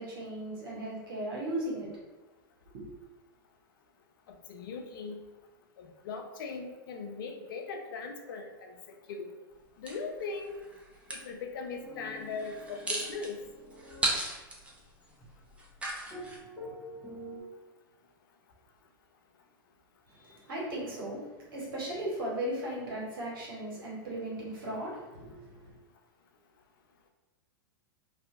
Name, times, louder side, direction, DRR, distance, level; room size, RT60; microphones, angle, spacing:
voice 1, 0.0-1.9 2.7-2.9 20.2-21.3 21.5-25.7, right 1 dB, 70° right, -5 dB, 1.1 m, -37 dB
voice 2, 4.5-5.2 5.8-8.7 9.1-9.3 9.8-10.6 11.1-13.4, left 4 dB, 70° left, 4 dB, 0.5 m, -39 dB
sound 1, 9.9-11.2 12.3-16.4, right 2 dB, 10° right, 0.5 m, -36 dB
sound 2, 11.8-14.0 16.1-17.4, equal, 15° left, 1.4 m, -46 dB
2.7 x 2.4 x 2.4 m, 1.1 s
hypercardioid pair, 105°, 12 cm